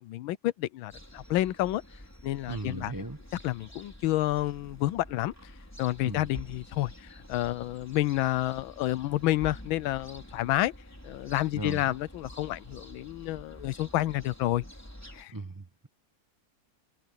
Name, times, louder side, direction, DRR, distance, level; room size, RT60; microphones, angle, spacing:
voice 1, 0.0-1.8 2.2-2.9 3.4-5.3 5.8-10.7 11.0-14.6 15.1-15.3, left 15 dB, 90° left, 1.5 m, -29 dB
sound 1, 0.9-15.2, equal, 5° left, 3.5 m, -48 dB
voice 2, 2.5-3.2 6.0-6.3 11.5-12.0 15.3-15.9, right 2 dB, 20° right, 0.6 m, -37 dB
open air
omnidirectional pair, 2.1 m